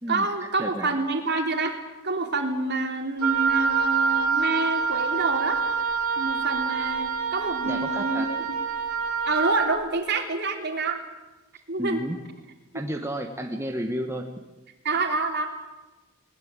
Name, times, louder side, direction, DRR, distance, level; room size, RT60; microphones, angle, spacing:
voice 1, 0.1-1.8 2.0-5.6 6.2-8.6 9.2-11.0 11.7-12.0 12.7-12.8 14.8-15.5, right 3 dB, 50° right, 4 dB, 3.3 m, -27 dB
Wind instrument woodwind instrument, 3.2-9.7, right 5 dB, 80° right, 3.3 m, -26 dB
voice 2, 7.6-8.3 11.8-12.2 12.7-14.3, equal, 15° right, 3 dB, 1.5 m, -31 dB
21.0 x 20.0 x 9.0 m, 1.1 s
head